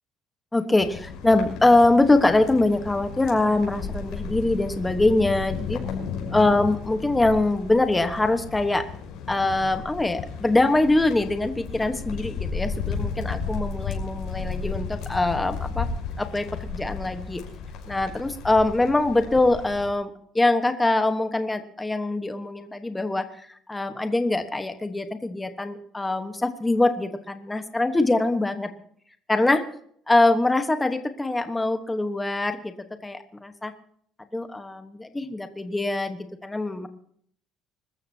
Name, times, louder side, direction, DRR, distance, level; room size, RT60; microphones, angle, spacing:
voice 1, 0.5-5.8 6.3-8.9 9.3-15.9 16.2-17.4 17.9-28.7 29.3-29.6 30.1-32.7 33.0-33.7 34.3-36.9, left 2 dB, 10° left, 8 dB, 1.2 m, -23 dB
sound 1, 0.8-19.9, left 5 dB, 70° left, 6.2 m, -34 dB
25.5 x 14.0 x 2.8 m, 0.63 s
cardioid pair, 155°, 0 cm